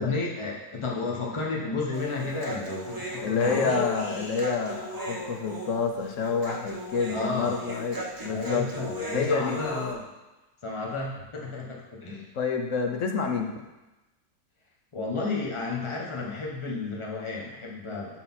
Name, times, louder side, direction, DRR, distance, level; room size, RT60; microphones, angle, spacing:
voice 1, 0.0-3.8 7.1-7.6 8.3-10.1 10.6-12.3 14.9-18.2, left 3 dB, 20° left, -3 dB, 1.2 m, -32 dB
Human voice, 1.9-9.9, equal, 20° right, 0.7 m, -35 dB
voice 2, 3.2-8.7 9.1-9.6 12.4-13.5, left 5 dB, 55° left, 3 dB, 1.0 m, -28 dB
11.5 x 4.1 x 4.3 m, 1.0 s
omnidirectional pair, 1.8 m